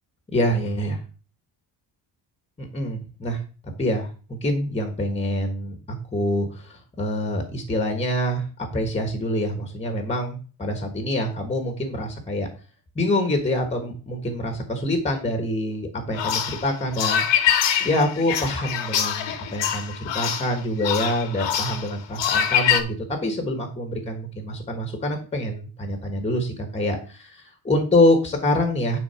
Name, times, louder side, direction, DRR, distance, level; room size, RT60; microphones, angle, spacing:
voice 1, 0.3-1.0 2.6-3.4 3.8-5.8 6.1-12.5 12.9-17.2 17.8-23.0 23.2-29.0, left 1 dB, 15° left, 5 dB, 1.4 m, -25 dB
sound 1, 16.1-22.8, left 9 dB, 75° left, 1.4 m, -24 dB
9.6 x 4.2 x 5.6 m, 0.36 s
cardioid pair, 175°, 44 cm